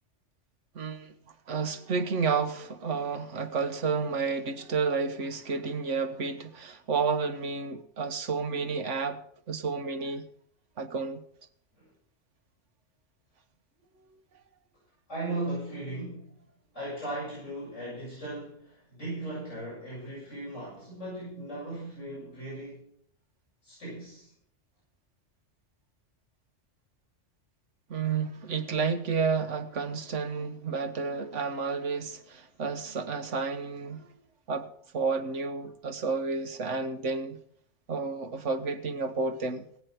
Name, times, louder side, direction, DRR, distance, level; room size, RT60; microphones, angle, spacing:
voice 1, 0.7-1.1 1.5-9.2 9.5-10.2 10.8-11.2 27.9-34.1 34.5-34.7 34.9-37.4 37.9-39.7, right 5 dB, 85° right, 1.6 m, -31 dB
voice 2, 15.1-16.3 16.7-22.8 23.6-24.3, right 2 dB, 90° left, 8.1 m, -37 dB
18.5 x 8.1 x 5.9 m
omnidirectional pair, 1.2 m